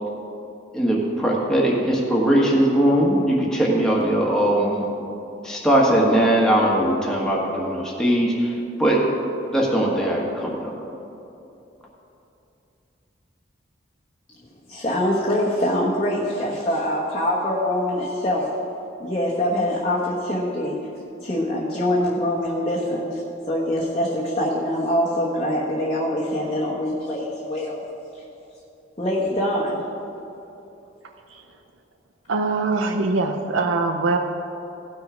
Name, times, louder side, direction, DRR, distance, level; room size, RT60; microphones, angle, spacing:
voice 1, 0.7-4.9 5.4-9.0 9.5-10.7, right 1 dB, 5° left, -4 dB, 1.6 m, -20 dB
voice 2, 14.7-18.5 19.0-20.8 21.2-23.2 23.5-27.8 28.1-28.2 29.0-29.8, left 1 dB, 30° left, -6 dB, 1.2 m, -24 dB
voice 3, 32.3-34.2, right 3 dB, 90° right, 4 dB, 0.6 m, -22 dB
17.0 x 6.2 x 5.0 m, 2.8 s
head